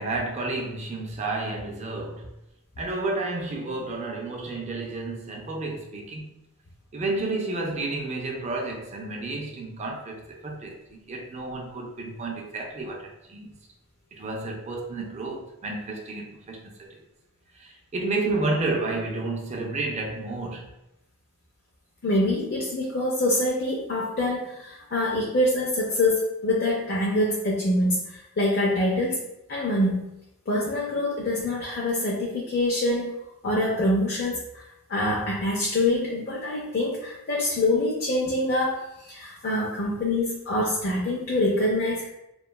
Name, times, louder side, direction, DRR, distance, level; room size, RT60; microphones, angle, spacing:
voice 1, 0.0-2.3 2.8-6.3 6.9-13.5 14.1-17.0 17.5-20.7, right 2 dB, 30° right, 0.3 m, -31 dB
voice 2, 22.0-30.1 30.5-33.2 33.4-34.6 34.9-42.1, left 1 dB, 45° left, 0.4 m, -25 dB
2.8 x 2.2 x 2.2 m
head